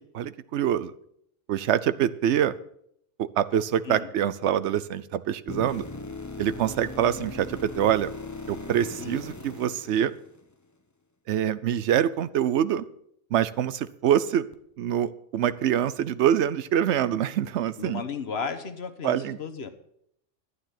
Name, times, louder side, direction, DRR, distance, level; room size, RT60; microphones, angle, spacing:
voice 1, 0.1-0.9 1.5-2.5 3.2-5.9 6.4-8.1 8.5-10.1 11.3-12.8 13.3-14.5 14.8-18.0 19.0-19.4, right 10 dB, 70° right, 15 dB, 0.9 m, -25 dB
sound 1, 5.5-10.5 14.5-14.6, left 2 dB, 15° left, 0.7 m, -39 dB
voice 2, 17.8-19.7, left 5 dB, 60° left, 8 dB, 1.3 m, -34 dB
11.5 x 9.7 x 5.8 m, 0.72 s
omnidirectional pair, 1.2 m